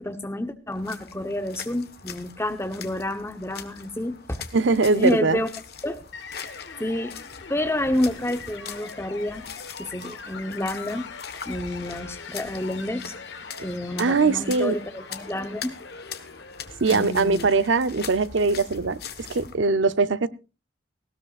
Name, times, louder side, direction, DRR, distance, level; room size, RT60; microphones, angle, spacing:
voice 1, 0.0-4.4 5.0-5.5 5.8-6.0 6.8-7.2 7.5-9.4 9.8-11.1 11.5-13.1 13.6-15.8 16.9-17.5, left 1 dB, 15° left, 0.9 m, -29 dB
sound 1, 0.7-19.6, left 7 dB, 55° left, 1.3 m, -42 dB
voice 2, 4.5-5.4 14.0-14.7 16.8-20.3, right 3 dB, 85° right, 0.7 m, -21 dB
sound 2, 6.1-17.3, left 5 dB, 75° left, 1.3 m, -42 dB
18.5 x 16.5 x 2.4 m
head